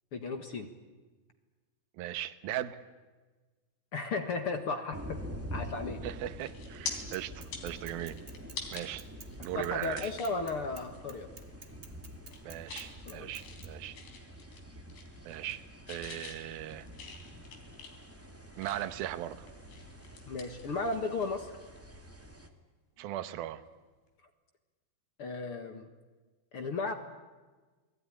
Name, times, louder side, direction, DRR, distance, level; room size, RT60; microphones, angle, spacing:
voice 1, 0.1-0.7 3.9-5.2 5.5-6.0 9.5-11.3 13.1-13.3 20.3-21.5 25.2-25.9 26.5-26.9, left 3 dB, 50° left, 7 dB, 1.7 m, -35 dB
voice 2, 1.9-2.8 6.0-8.2 8.7-9.1 9.4-10.1 12.4-14.0 15.2-16.9 18.6-19.5 23.0-23.6, right 13 dB, 75° right, 12 dB, 2.8 m, -38 dB
sound 1, 4.9-22.5, equal, 10° right, 0.6 m, -47 dB
sound 2, 5.8-6.1 6.4-6.9 7.4-8.9 9.3-9.4 9.9-10.4 10.8-11.0 11.3-11.8 12.1-12.9 13.3-14.6 14.9-15.6 15.9-19.0 19.5-21.3 21.6-21.8 23.7-23.8, left 6 dB, 75° left, 5.5 m, -45 dB
Bicycle / Mechanisms, 7.1-13.7, right 4 dB, 55° right, 0.7 m, -51 dB
29.0 x 20.5 x 10.0 m, 1.3 s
omnidirectional pair, 4.6 m